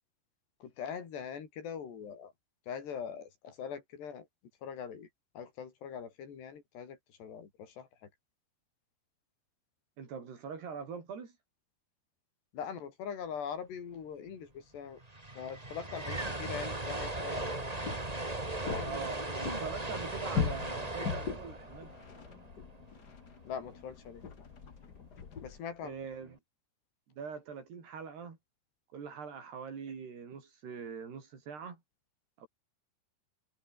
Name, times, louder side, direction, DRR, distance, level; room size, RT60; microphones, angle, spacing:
voice 1, 0.6-2.3 2.7-4.3 4.6-5.1 5.4-7.9 12.5-15.0 15.3-17.5 18.6-19.3 23.5-24.2 25.4-26.0, left 7 dB, 85° left, 6.2 m, -42 dB
voice 2, 10.0-11.3 18.8-21.9 25.8-26.4 27.2-28.4 28.9-31.8 32.4-32.5, right 6 dB, 75° right, 6.6 m, -43 dB
sound 1, 14.6-14.7 14.9-23.1, right 2 dB, 10° right, 2.1 m, -38 dB
sound 2, 17.2-25.6, left 6 dB, 55° left, 1.1 m, -40 dB
omnidirectional pair, 4.7 m